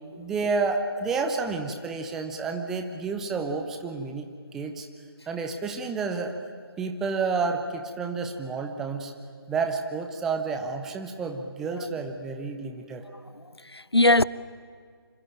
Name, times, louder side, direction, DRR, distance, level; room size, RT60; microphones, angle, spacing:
voice 1, 0.2-4.3 4.5-4.9 5.3-6.4 6.8-9.1 9.5-13.0, right 4 dB, 5° right, 0.6 m, -30 dB
voice 2, 13.3-14.2, left 1 dB, 90° left, 0.9 m, -22 dB
25.5 x 25.0 x 9.0 m
figure-of-eight pair, 155°, 13 cm